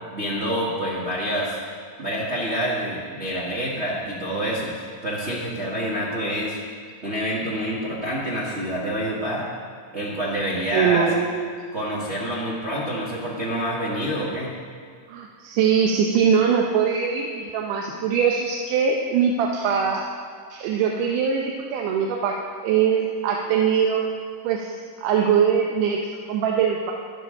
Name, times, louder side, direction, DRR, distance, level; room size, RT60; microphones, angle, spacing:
voice 1, 0.1-1.6 2.0-4.7 5.0-6.6 7.0-9.5 9.9-11.1 11.7-14.5, equal, 55° right, -6 dB, 0.7 m, -27 dB
voice 2, 10.7-11.5 15.1-20.1 20.5-24.0 24.4-24.7 25.0-26.9, right 7 dB, 75° right, 1 dB, 2.2 m, -22 dB
13.5 x 10.5 x 3.7 m, 2.1 s
omnidirectional pair, 3.9 m